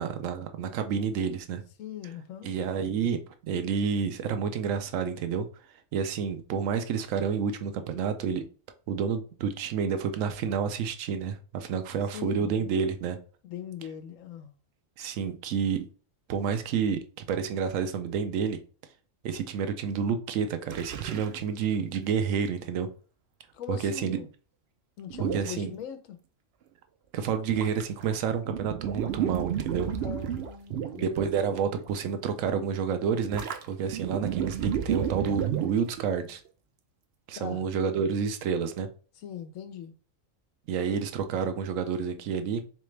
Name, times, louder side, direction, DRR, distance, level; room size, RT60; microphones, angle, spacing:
voice 1, 0.0-1.6 2.4-3.2 3.4-5.5 5.9-8.4 8.9-13.2 15.0-15.9 16.3-17.0 17.3-18.6 19.2-22.9 23.7-24.2 25.2-25.7 27.1-29.9 30.9-36.4 37.3-38.9 40.7-42.6, right 6 dB, 80° right, 1.0 m, -29 dB
voice 2, 1.8-2.5 12.1-12.7 13.4-14.5 23.5-24.3 25.0-26.2 30.0-31.1 37.3-37.7 39.2-39.9, left 9 dB, 85° left, 1.1 m, -40 dB
sound 1, 20.7-21.4 21.9-22.0 25.1-25.5 27.5-28.1 28.4-31.2 31.5-31.9 33.3-36.1, right 9 dB, 65° right, 0.7 m, -32 dB
3.8 x 3.3 x 3.2 m
omnidirectional pair, 1.3 m